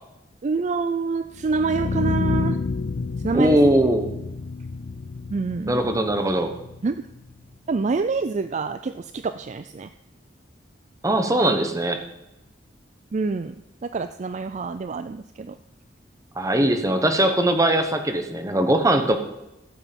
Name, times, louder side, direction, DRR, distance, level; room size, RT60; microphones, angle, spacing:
voice 1, 0.4-2.6 3.2-3.6 5.3-5.8 6.8-6.9 7.7-9.9 13.1-13.6 13.8-15.5, right 4 dB, 40° right, 11 dB, 0.4 m, -26 dB
sound 1, 1.4-7.4, left 4 dB, 50° left, 0.4 m, -29 dB
voice 2, 3.3-4.1 5.7-6.5 11.0-12.0 16.4-19.2, right 1 dB, 20° right, 6 dB, 1.1 m, -20 dB
14.5 x 8.2 x 5.3 m, 0.93 s
head